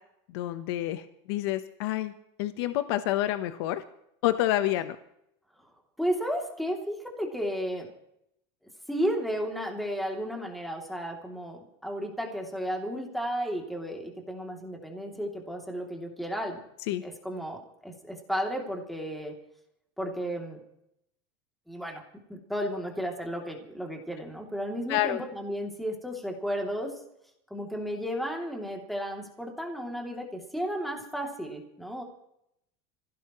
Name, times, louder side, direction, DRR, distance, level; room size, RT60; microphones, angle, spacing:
voice 1, 0.3-2.1 2.4-3.8 4.2-5.0 16.9-17.0 24.9-25.2, left 14 dB, 75° left, 10 dB, 1.0 m, -28 dB
voice 2, 6.0-7.9 8.9-16.6 17.0-19.3 20.0-20.6 21.7-22.0 22.3-27.0 27.5-32.0, equal, ahead, 1 dB, 2.8 m, -33 dB
26.5 x 16.5 x 3.1 m, 0.78 s
supercardioid pair, 150°, 14 cm